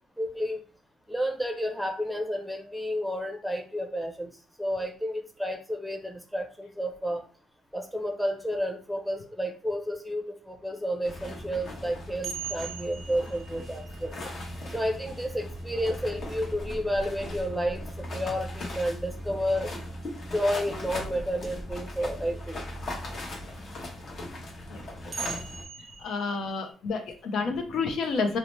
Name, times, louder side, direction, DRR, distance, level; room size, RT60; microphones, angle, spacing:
voice 1, 0.2-0.6 1.1-4.3 4.6-7.3 7.7-14.1 14.7-17.8 18.1-19.7 20.3-22.6 25.0-25.2, equal, ahead, 5 dB, 0.6 m, -31 dB
sound 1, 11.0-25.6, left 1 dB, 55° left, 0.9 m, -38 dB
sound 2, 12.2-16.5 18.3-18.4 21.4-21.5 25.1-26.7, right 7 dB, 45° right, 0.4 m, -41 dB
voice 2, 26.0-28.4, left 4 dB, 70° left, 6 dB, 0.6 m, -30 dB
2.8 x 2.1 x 3.1 m, 0.37 s
cardioid pair, 90°, 0 cm